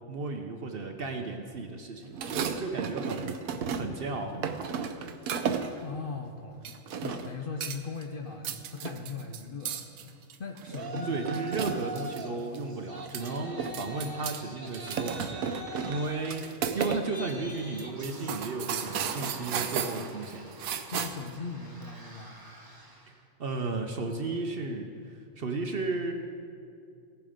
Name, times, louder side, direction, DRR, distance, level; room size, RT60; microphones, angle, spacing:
voice 1, 0.1-3.4 3.7-4.8 11.1-15.5 15.9-20.5 23.1-23.2 23.4-26.1, right 3 dB, 50° right, 5 dB, 0.8 m, -34 dB
sound 1, 2.1-4.1 4.4-5.8 6.7-7.3 7.6-8.0 8.3-12.2 12.5-12.6 13.0-14.4 14.7-17.0 17.3-17.4 17.8-21.3, right 7 dB, 80° right, 1.1 m, -34 dB
voice 2, 5.8-6.6 7.0-10.1 10.4-11.2 20.9-22.3, left 4 dB, 55° left, 3 dB, 0.6 m, -39 dB
Yell, 10.7-12.4 12.7-23.1, right 1 dB, 20° right, 0.9 m, -44 dB
16.5 x 7.5 x 5.0 m, 2.4 s
omnidirectional pair, 1.5 m